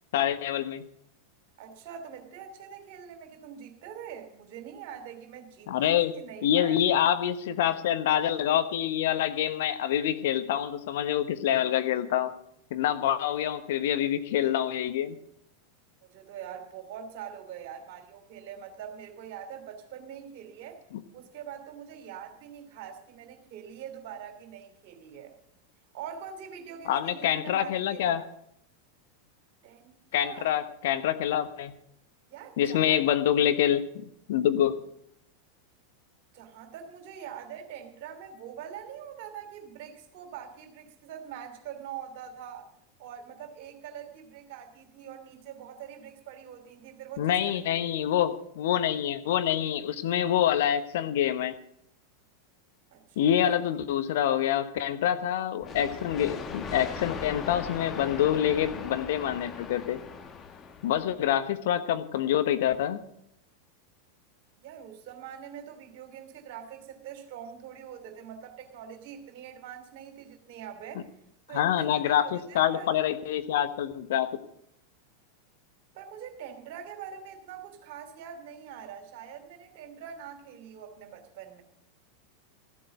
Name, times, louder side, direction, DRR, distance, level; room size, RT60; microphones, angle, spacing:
voice 1, 0.1-0.8 5.7-6.1 6.4-12.3 12.7-15.2 26.9-28.2 30.1-31.7 32.6-34.7 47.2-51.5 53.2-60.0 60.8-63.0 71.5-74.4, left 10 dB, 60° left, 10 dB, 1.1 m, -26 dB
voice 2, 1.6-7.0 16.0-20.8 21.1-25.3 25.9-28.3 29.6-30.5 32.3-33.0 36.3-42.7 43.0-47.9 52.9-53.7 64.6-71.1 71.5-72.9 75.9-81.6, right 8 dB, 50° right, 5 dB, 2.9 m, -44 dB
sound 1, 55.6-61.3, left 6 dB, 30° left, 1.2 m, -39 dB
14.5 x 7.7 x 8.0 m, 0.73 s
figure-of-eight pair, 90°, 0 cm